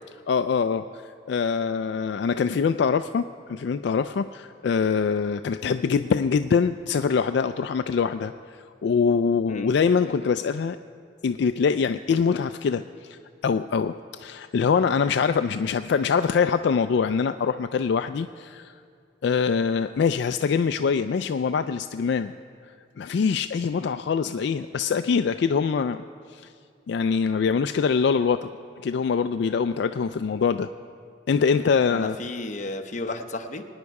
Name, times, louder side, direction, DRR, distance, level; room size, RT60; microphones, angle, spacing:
voice 1, 0.3-3.2 3.5-8.3 8.8-10.8 11.2-18.7 19.2-22.3 23.0-26.0 26.3-26.5 26.9-28.5 28.8-30.7 31.3-32.2, left 6 dB, 65° left, 9 dB, 0.3 m, -24 dB
voice 2, 31.9-33.7, left 2 dB, 40° left, 5 dB, 0.8 m, -33 dB
23.5 x 9.6 x 4.7 m, 2.3 s
head